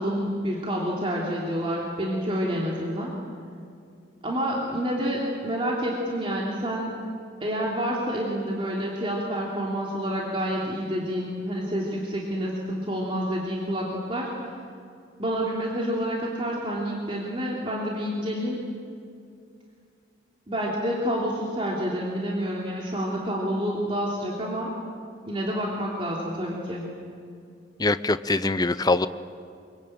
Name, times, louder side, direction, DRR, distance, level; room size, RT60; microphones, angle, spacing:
voice 1, 0.0-3.1 4.2-6.9 7.4-14.3 15.2-18.6 20.5-24.7 25.3-26.8, equal, 30° right, -4 dB, 3.1 m, -28 dB
voice 2, 27.8-29.1, left 2 dB, 20° left, 13 dB, 0.6 m, -23 dB
24.0 x 23.5 x 8.9 m, 2.4 s
head